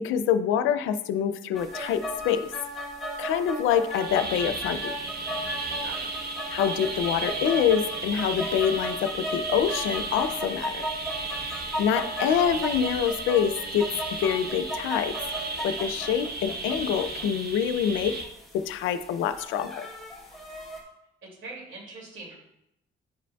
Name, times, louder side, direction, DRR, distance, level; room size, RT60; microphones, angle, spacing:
voice 1, 0.0-2.5 3.2-4.9 6.5-10.8 11.8-13.9 14.2-15.2 15.6-18.2 18.5-19.9, left 8 dB, 85° left, 10 dB, 0.4 m, -26 dB
sound 1, 1.5-20.8, equal, ahead, 1.9 m, -36 dB
sound 2, 3.9-18.3, right 3 dB, 50° right, 0.9 m, -35 dB
voice 2, 5.8-6.1 21.4-22.4, right 2 dB, 75° right, -2 dB, 2.5 m, -42 dB
9.2 x 5.0 x 2.3 m, 0.80 s
cardioid pair, 90°, 20 cm